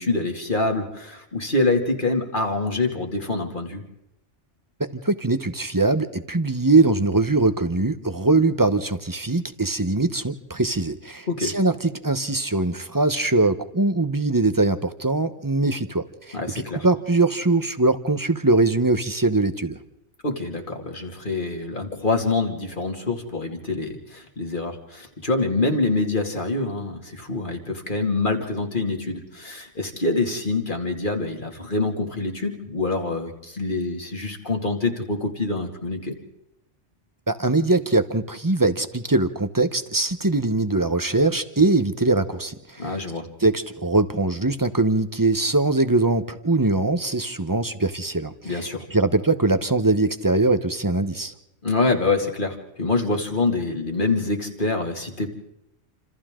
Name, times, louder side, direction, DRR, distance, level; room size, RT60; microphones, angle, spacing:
voice 1, 0.0-3.8 11.3-11.5 16.3-16.9 20.2-36.1 42.8-43.3 48.4-48.9 51.6-55.3, left 3 dB, 40° left, 3 dB, 2.8 m, -25 dB
voice 2, 4.8-19.8 37.3-42.9 43.4-48.6 48.9-51.3, right 2 dB, 20° right, 10 dB, 1.0 m, -22 dB
28.5 x 27.0 x 3.8 m, 0.86 s
omnidirectional pair, 1.2 m